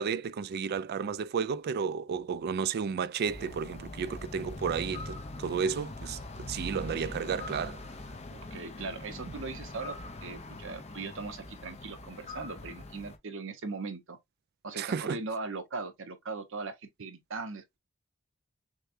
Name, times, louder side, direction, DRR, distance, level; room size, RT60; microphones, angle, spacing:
voice 1, 0.0-6.2 6.5-7.8 14.7-15.2, right 6 dB, 50° right, 0.3 m, -32 dB
sound 1, 3.3-13.2, left 2 dB, 30° left, 0.7 m, -42 dB
voice 2, 8.3-14.2 14.6-17.8, right 3 dB, 65° right, 1.0 m, -39 dB
6.4 x 2.3 x 2.6 m
head